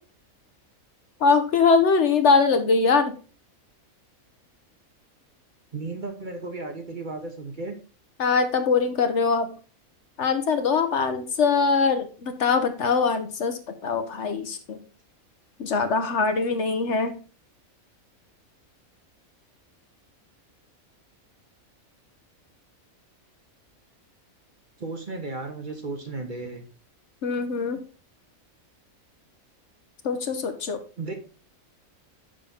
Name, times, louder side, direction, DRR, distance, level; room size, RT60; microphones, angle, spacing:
voice 1, 1.2-3.1 8.2-9.5 10.2-14.8 15.6-17.1 27.2-27.8 30.0-30.8, left 5 dB, 60° left, 8 dB, 1.0 m, -22 dB
voice 2, 5.7-7.7 24.8-26.6 31.0-31.1, right 3 dB, 40° right, 5 dB, 1.0 m, -34 dB
6.3 x 5.6 x 3.8 m, 0.36 s
omnidirectional pair, 1.4 m